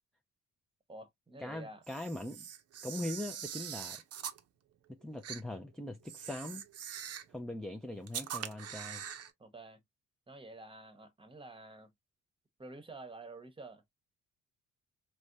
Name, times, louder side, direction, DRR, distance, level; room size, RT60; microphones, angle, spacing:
voice 1, 0.9-1.8 9.4-9.8 10.3-11.9 12.6-13.8, right 2 dB, 15° right, 0.9 m, -49 dB
voice 2, 1.4-2.4 2.8-4.0 4.9-6.6 7.3-9.0, left 1 dB, ahead, 0.3 m, -41 dB
Camera, 1.8-4.4 5.2-5.4 6.0-7.3 8.1-9.3, right 9 dB, 55° right, 0.6 m, -43 dB
3.3 x 2.1 x 2.6 m
cardioid pair, 90°, 30 cm